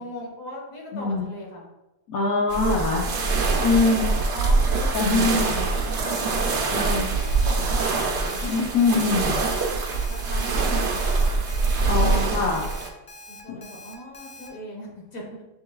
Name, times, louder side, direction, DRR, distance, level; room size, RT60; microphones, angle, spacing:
voice 1, 0.0-1.6 3.4-8.5 9.2-9.4 10.1-11.1 13.3-15.4, left 1 dB, 70° left, -2 dB, 1.6 m, -39 dB
voice 2, 0.9-1.3 2.1-3.1 3.6-4.1 4.9-5.7 6.7-7.1 8.4-9.3 11.9-12.7 13.5-13.6, left 3 dB, 85° left, -3 dB, 1.2 m, -23 dB
sound 1, 2.5-12.9, right 3 dB, 60° right, 0.8 m, -24 dB
Alarm, 6.1-14.5, left 1 dB, 40° left, 0.5 m, -44 dB
6.7 x 3.2 x 2.3 m, 0.97 s
omnidirectional pair, 1.5 m